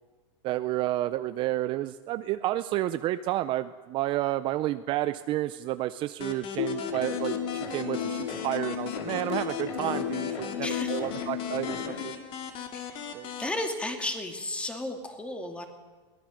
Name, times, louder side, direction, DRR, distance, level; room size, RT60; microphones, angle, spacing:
voice 1, 0.4-12.1 13.1-13.3, right 15 dB, 35° right, 12 dB, 0.6 m, -30 dB
sound 1, 6.2-13.5, left 7 dB, 35° left, 2.5 m, -40 dB
sound 2, 6.6-12.0, left 8 dB, 75° left, 4.0 m, -33 dB
voice 2, 10.6-11.0 12.7-13.0 13.4-15.7, left 1 dB, 10° left, 5 dB, 2.4 m, -33 dB
22.5 x 18.0 x 6.5 m, 1.4 s
supercardioid pair, 140°, 15 cm